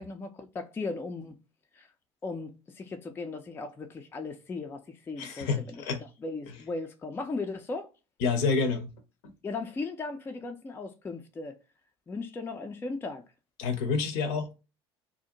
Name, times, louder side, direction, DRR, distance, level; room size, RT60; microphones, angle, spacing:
voice 1, 0.0-1.4 1.7-1.9 2.2-5.8 6.2-7.9 9.4-11.6 12.1-13.2, left 3 dB, 15° left, 0.4 m, -37 dB
voice 2, 5.2-6.0 8.2-8.9 13.6-14.5, left 4 dB, 55° left, 0.6 m, -28 dB
2.5 x 2.0 x 2.7 m
figure-of-eight pair, 60°, 14 cm